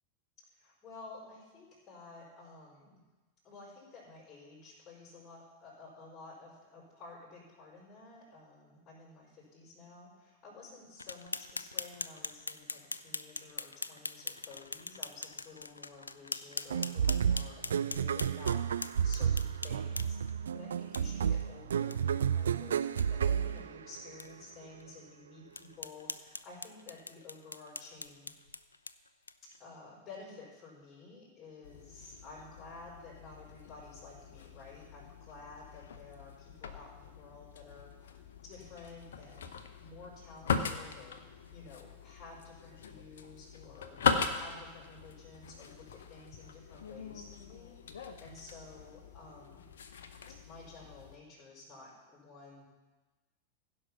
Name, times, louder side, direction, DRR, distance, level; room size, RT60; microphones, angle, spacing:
voice 1, 0.5-3.0 3.4-28.3 29.6-38.2 38.4-49.7 50.5-52.6, left 3 dB, 20° left, -6 dB, 4.6 m, -52 dB
sound 1, 11.0-20.3 20.9-21.0 21.4-21.5 21.9-22.0 22.3-22.4 22.8-23.1 23.6-23.7 24.2-24.3 24.8-24.9 25.5-29.6, left 3 dB, 80° left, 0.4 m, -42 dB
sound 2, 16.7-24.3, right 8 dB, 65° right, 0.3 m, -31 dB
sound 3, 31.6-51.2, left 6 dB, 60° left, 0.8 m, -40 dB
16.0 x 5.5 x 6.0 m, 1.2 s
figure-of-eight pair, 90°, 0 cm